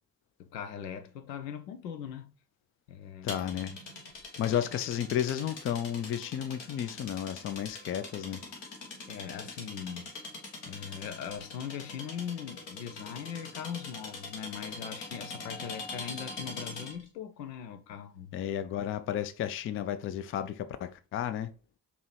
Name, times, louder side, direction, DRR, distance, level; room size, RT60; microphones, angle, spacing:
voice 1, 0.4-2.3 2.9-3.4 4.4-4.5 9.1-10.1 10.7-18.3, left 8 dB, 80° left, 0.6 m, -40 dB
voice 2, 3.2-3.8 4.4-8.4 18.3-21.5, left 10 dB, 30° left, 0.4 m, -32 dB
sound 1, 3.3-17.1, left 3 dB, 60° left, 1.3 m, -43 dB
4.7 x 2.8 x 3.2 m
figure-of-eight pair, 40°, 49 cm